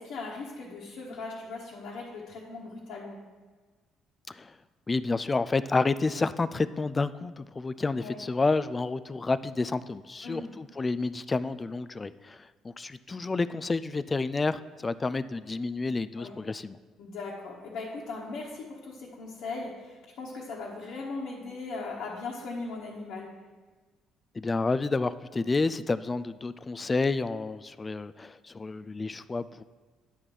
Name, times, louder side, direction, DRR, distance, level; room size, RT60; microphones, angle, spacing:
voice 1, 0.0-3.2 8.0-8.2 10.2-10.5 16.2-16.4 17.0-23.3, left 3 dB, 65° left, -5 dB, 1.3 m, -39 dB
voice 2, 4.9-16.8 24.4-29.6, left 3 dB, 30° left, 14 dB, 0.3 m, -30 dB
9.9 x 3.7 x 6.2 m, 1.4 s
hypercardioid pair, 60°, 0 cm